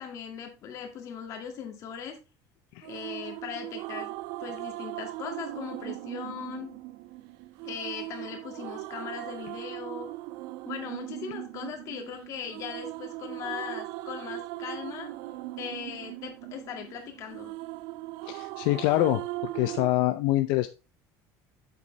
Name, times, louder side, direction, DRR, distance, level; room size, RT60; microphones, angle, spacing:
voice 1, 0.0-2.2 2.8-4.1 4.4-6.7 7.6-10.1 10.7-15.1 15.6-17.5, left 7 dB, 40° left, 4 dB, 2.0 m, -39 dB
sound 1, 2.8-19.9, right 18 dB, 60° right, 0.4 m, -39 dB
voice 2, 18.2-19.2 19.5-20.7, left 16 dB, 65° left, 10 dB, 0.6 m, -25 dB
8.2 x 6.8 x 3.3 m, 0.30 s
cardioid pair, 175°, 8 cm